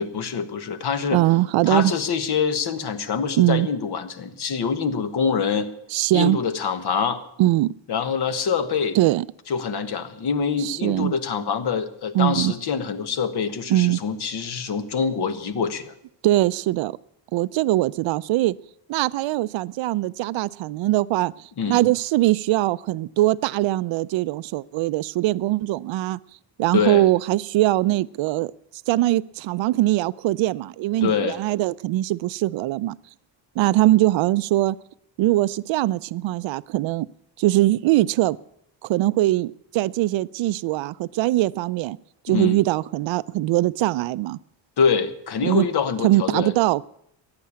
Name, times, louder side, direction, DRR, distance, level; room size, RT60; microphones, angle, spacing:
voice 1, 0.0-1.2 1.7-5.7 6.1-7.2 7.9-9.0 9.5-15.9 21.6-21.8 26.7-27.1 31.0-31.4 42.3-42.6 44.8-46.5, left 6 dB, 60° left, 10 dB, 1.5 m, -25 dB
voice 2, 1.1-1.9 3.4-3.7 5.9-6.4 7.4-7.7 8.9-9.3 10.6-11.1 12.1-12.5 13.7-14.0 16.2-16.9 17.3-18.5 18.9-26.2 26.6-28.5 28.9-32.9 33.6-34.8 35.2-37.1 37.4-38.4 38.8-42.0 42.2-44.4 45.4-45.7 46.0-46.8, right 16 dB, 90° right, 17 dB, 0.6 m, -21 dB
15.0 x 10.5 x 8.6 m, 0.74 s
cardioid pair, 120°, 44 cm